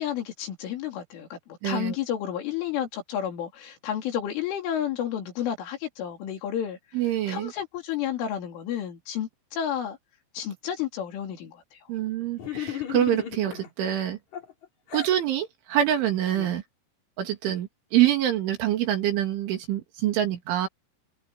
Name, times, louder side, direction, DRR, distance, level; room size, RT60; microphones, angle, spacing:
voice 1, 0.0-1.4 1.6-6.8 7.3-10.0 10.4-11.6 16.4-16.6 17.5-17.6, left 10 dB, 75° left, 5.6 m, -31 dB
voice 2, 1.6-2.0 6.9-7.5 11.9-14.2 14.9-16.6 17.2-20.7, right 11 dB, 70° right, 4.7 m, -25 dB
sound 1, 12.4-13.7 14.3-15.2, left 10 dB, 40° left, 3.6 m, -34 dB
omnidirectional pair, 5.8 m